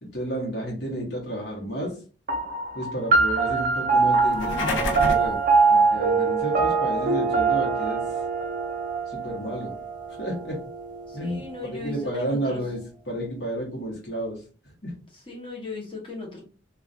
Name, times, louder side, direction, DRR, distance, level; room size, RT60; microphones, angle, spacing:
voice 1, 0.0-2.0 2.7-5.4 5.7-8.2 9.1-9.7 10.2-10.6 11.1-11.4 11.7-12.8 13.1-14.9, right 1 dB, 60° left, -3 dB, 0.9 m, -31 dB
sound 1, 2.3-11.1, right 4 dB, 45° right, 0.4 m, -23 dB
sound 2, 4.2-5.3, left 2 dB, 80° left, 0.5 m, -28 dB
voice 2, 11.1-12.6 15.1-16.4, left 3 dB, 25° left, -1 dB, 0.7 m, -37 dB
2.4 x 2.2 x 2.5 m, 0.38 s
head